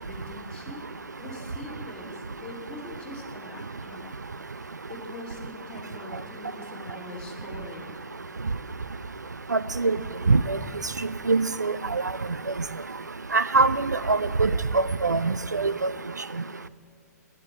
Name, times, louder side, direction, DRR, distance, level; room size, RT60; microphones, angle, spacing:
voice 1, 0.0-0.9 1.2-4.2 4.5-8.0, left 2 dB, 10° left, -4 dB, 2.8 m, -43 dB
voice 2, 9.5-10.0 10.3-10.6 11.3-12.0 13.3-15.9, right 3 dB, 85° right, 16 dB, 0.4 m, -23 dB
17.0 x 11.0 x 4.9 m, 2.5 s
figure-of-eight pair, 115°, 9 cm